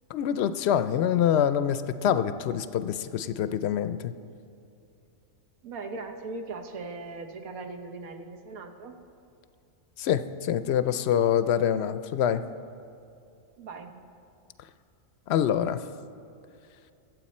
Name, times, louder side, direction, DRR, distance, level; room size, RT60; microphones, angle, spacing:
voice 1, 0.1-4.1 10.0-12.4 15.3-15.8, left 9 dB, 65° left, 12 dB, 0.7 m, -25 dB
voice 2, 5.6-9.0 11.2-11.3 13.6-14.0, right 3 dB, 90° right, 5 dB, 1.4 m, -39 dB
23.0 x 8.1 x 4.2 m, 2.6 s
omnidirectional pair, 1.4 m